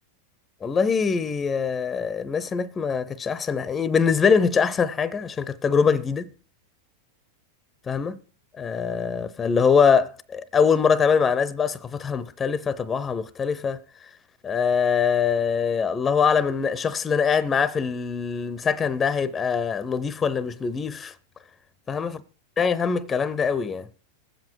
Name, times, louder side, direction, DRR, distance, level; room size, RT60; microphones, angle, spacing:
voice 1, 0.6-6.3 7.9-8.2 8.6-13.8 14.4-21.1 21.9-22.1 22.6-23.9, left 6 dB, 20° left, 0.6 m, -23 dB
19.5 x 7.7 x 4.6 m
hypercardioid pair, 115°, 0 cm